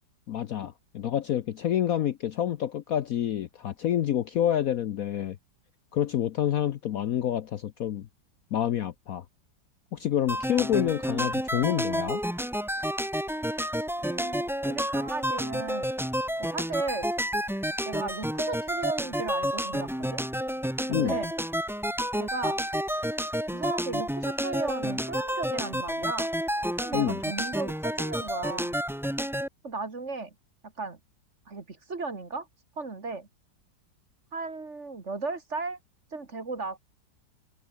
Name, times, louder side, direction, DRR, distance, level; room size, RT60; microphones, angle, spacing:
voice 1, 0.3-5.4 5.9-8.1 8.5-9.2 9.9-12.2 20.9-21.2 26.9-27.2, left 10 dB, 60° left, 1.0 m, -28 dB
sound 1, 10.3-29.5, equal, ahead, 1.4 m, -30 dB
voice 2, 14.0-15.9 16.4-17.1 17.8-20.2 20.8-21.3 22.1-22.6 23.5-26.3 26.8-28.8 29.6-30.3 30.8-31.0 31.5-32.5 32.8-33.3 34.3-35.8 36.1-36.8, right 3 dB, 40° right, 2.6 m, -35 dB
omnidirectional pair, 2.0 m